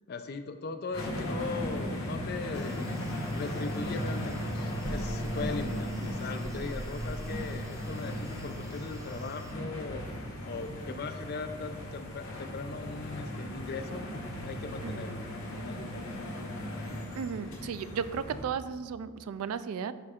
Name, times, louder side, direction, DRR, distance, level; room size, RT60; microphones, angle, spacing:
voice 1, 0.1-2.8 3.3-5.9 6.2-10.0 10.4-14.0 14.4-15.2 15.6-16.1 17.3-17.6, left 4 dB, 45° left, 8 dB, 0.4 m, -39 dB
sound 1, 0.9-18.4, equal, 65° left, 1.5 m, -37 dB
sound 2, 2.5-9.5, equal, 15° right, 0.5 m, -45 dB
voice 2, 17.2-19.9, right 7 dB, 80° right, 14 dB, 0.3 m, -35 dB
11.0 x 4.3 x 2.4 m, 1.5 s
head